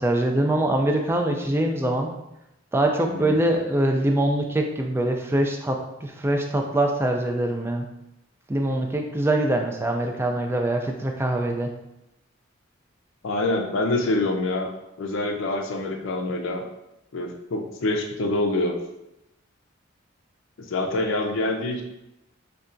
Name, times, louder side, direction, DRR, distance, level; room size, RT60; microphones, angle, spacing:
voice 1, 0.0-2.1 2.7-7.9 8.5-11.7, right 1 dB, 10° right, 2 dB, 0.3 m, -23 dB
voice 2, 3.0-3.4 13.2-14.7 15.0-16.7 17.1-18.7 20.6-21.8, left 2 dB, 65° left, 2 dB, 0.4 m, -26 dB
5.3 x 2.3 x 2.5 m, 0.90 s
head